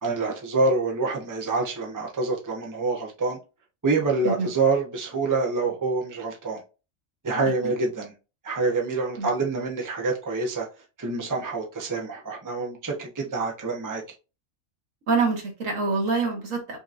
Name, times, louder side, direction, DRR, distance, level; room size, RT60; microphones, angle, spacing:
voice 1, 0.0-3.4 3.8-6.6 7.2-8.1 8.4-10.7 11.0-14.0, right 3 dB, 15° right, 0.8 m, -26 dB
voice 2, 15.1-16.8, right 4 dB, 80° right, 1.8 m, -25 dB
5.8 x 2.9 x 2.5 m
omnidirectional pair, 1.3 m